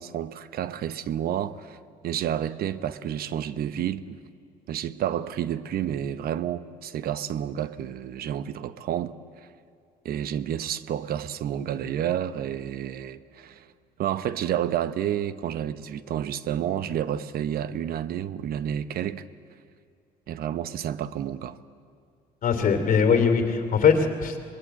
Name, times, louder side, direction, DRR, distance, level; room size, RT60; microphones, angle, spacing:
voice 1, 0.0-1.8 2.0-4.2 4.7-9.1 10.0-13.6 14.0-19.2 20.3-21.6, right 10 dB, 65° right, 0.9 m, -30 dB
voice 2, 22.4-24.4, left 6 dB, 50° left, 2.7 m, -21 dB
23.5 x 20.5 x 8.2 m
cardioid pair, 110°, 17 cm